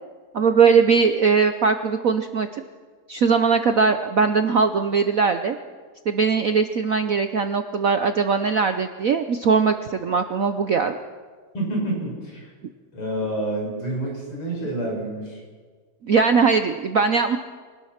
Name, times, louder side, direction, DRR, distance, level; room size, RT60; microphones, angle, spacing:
voice 1, 0.3-2.5 3.1-5.6 6.1-11.0 16.0-17.4, right 5 dB, 65° right, 8 dB, 0.8 m, -20 dB
voice 2, 11.5-12.5 12.9-15.4, right 1 dB, 80° left, -1 dB, 6.8 m, -28 dB
24.5 x 19.0 x 5.9 m, 1.5 s
omnidirectional pair, 2.4 m